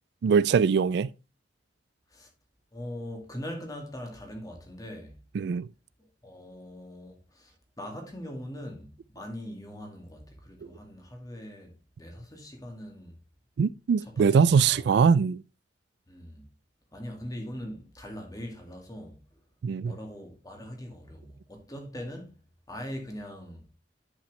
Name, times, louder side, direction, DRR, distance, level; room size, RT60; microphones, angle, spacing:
voice 1, 0.2-1.1 5.3-5.7 13.6-15.4 19.6-19.9, right 6 dB, 65° right, 0.3 m, -22 dB
voice 2, 2.7-5.2 6.0-13.1 14.1-14.9 16.1-16.5 16.9-19.2 19.8-22.3 22.7-23.7, equal, 20° left, 2.2 m, -41 dB
10.0 x 5.9 x 3.2 m
head